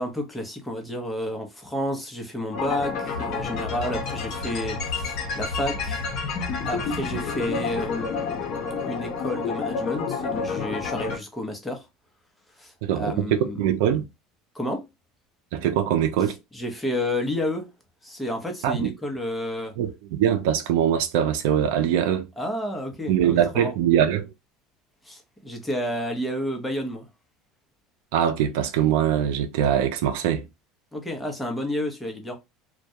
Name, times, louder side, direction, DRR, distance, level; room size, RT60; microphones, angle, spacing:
voice 1, 0.0-6.0 6.7-11.9 12.6-13.7 14.5-14.9 16.5-17.7 18.0-19.7 22.4-23.7 25.0-27.1 30.9-32.4, left 1 dB, 10° left, 0.8 m, -31 dB
sound 1, 2.5-11.2, left 5 dB, 55° left, 0.7 m, -29 dB
voice 2, 12.8-14.1 15.5-16.4 18.6-18.9 19.8-22.3 23.1-24.3 28.1-30.5, right 10 dB, 80° right, 0.4 m, -22 dB
2.3 x 2.1 x 2.7 m
supercardioid pair, 115°, 0 cm